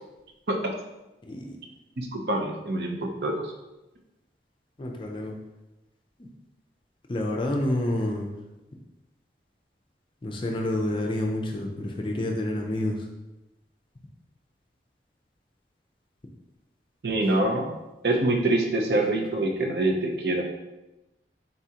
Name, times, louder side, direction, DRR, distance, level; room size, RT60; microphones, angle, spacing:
voice 1, 1.2-1.6 4.8-5.3 6.2-6.3 7.1-8.3 10.2-13.1, left 1 dB, 30° left, 2 dB, 0.4 m, -28 dB
voice 2, 2.0-3.5 17.0-17.7 18.0-20.4, right 2 dB, 65° right, 2 dB, 0.6 m, -25 dB
4.1 x 3.6 x 2.8 m, 1.0 s
head